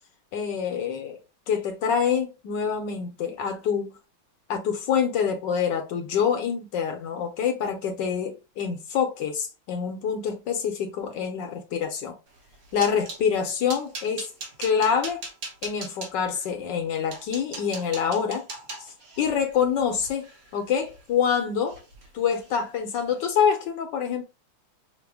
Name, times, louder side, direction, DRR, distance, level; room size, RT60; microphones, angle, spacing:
voice 1, 0.3-1.2 1.5-3.9 4.5-12.2 12.7-14.3 14.6-15.2 15.6-18.4 18.8-21.8 22.1-24.2, left 7 dB, 70° left, 1.1 m, -26 dB
sound 1, 12.4-13.2 13.7-16.1 16.7-16.8 17.1-21.3 21.7-22.1 22.3-22.6 23.0-23.1, right 3 dB, 50° right, 1.5 m, -40 dB
5.9 x 2.1 x 3.4 m
omnidirectional pair, 2.4 m